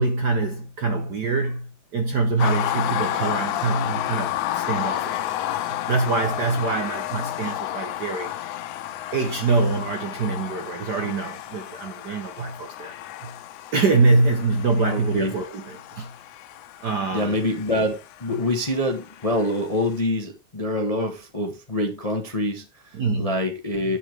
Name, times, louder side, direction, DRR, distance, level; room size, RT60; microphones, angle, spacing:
voice 1, 0.0-5.4 5.7-8.3 9.1-12.9 13.2-13.3 13.7-16.1 16.8-17.4 18.3-18.4 22.9-23.4, right 3 dB, 75° right, 0.9 m, -24 dB
sound 1, 2.4-19.6, left 13 dB, 85° left, 2.1 m, -31 dB
voice 2, 14.9-15.3 17.1-24.0, left 1 dB, 60° left, 0.3 m, -26 dB
9.9 x 7.7 x 3.4 m
omnidirectional pair, 3.3 m